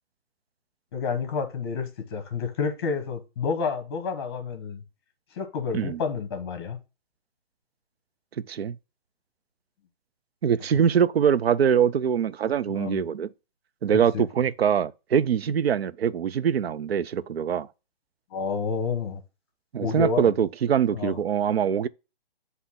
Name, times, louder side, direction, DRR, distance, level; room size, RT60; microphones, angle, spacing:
voice 1, 0.9-4.8 5.4-6.8 10.7-10.8 12.7-13.0 13.9-14.2 18.3-19.2 19.8-20.3 20.9-21.2, left 5 dB, 25° left, 1.1 m, -29 dB
voice 2, 10.4-13.3 13.8-17.7 19.7-21.9, right 8 dB, 85° right, 0.6 m, -23 dB
8.0 x 2.8 x 5.6 m
hypercardioid pair, 170°, 30 cm